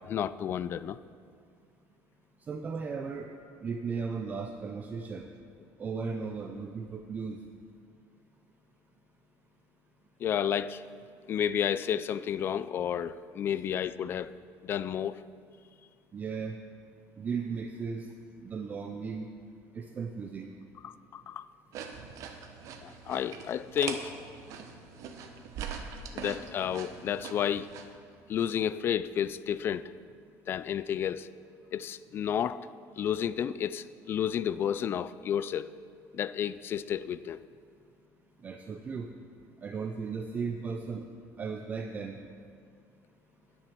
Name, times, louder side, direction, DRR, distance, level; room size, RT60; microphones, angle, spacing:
voice 1, 0.1-1.0 10.2-10.8 11.3-14.3 14.6-15.2 20.8-21.5 22.8-24.1 26.1-27.7 28.3-29.8 30.5-31.3 31.7-32.6 33.0-35.7 36.1-37.4, left 9 dB, 35° left, 16 dB, 0.3 m, -31 dB
voice 2, 2.4-3.3 3.6-5.3 5.8-7.4 16.1-16.6 17.2-18.1 18.4-19.3 19.7-20.5 22.3-22.4 38.4-39.1 39.6-41.1 41.4-42.2, right 5 dB, 25° right, 5 dB, 0.5 m, -36 dB
sound 1, 21.7-27.9, right 6 dB, 60° right, 1.1 m, -42 dB
10.0 x 10.0 x 5.9 m, 2.3 s
cardioid pair, 150°, 6 cm